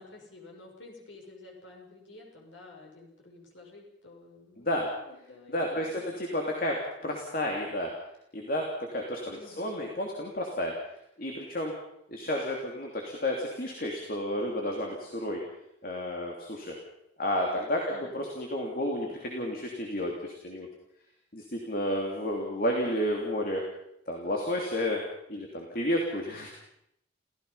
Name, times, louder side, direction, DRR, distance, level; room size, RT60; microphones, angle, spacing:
voice 1, 0.0-6.2 9.3-9.7 17.9-18.2, left 2 dB, 85° left, 0 dB, 6.5 m, -51 dB
voice 2, 4.6-4.9 5.5-6.8 7.0-7.9 8.3-10.7 11.2-11.7 12.1-15.4 15.8-16.7 17.2-20.7 21.3-23.6 24.1-25.0 25.3-26.5, left 1 dB, 50° left, 0 dB, 3.1 m, -31 dB
28.5 x 16.5 x 5.7 m, 0.78 s
head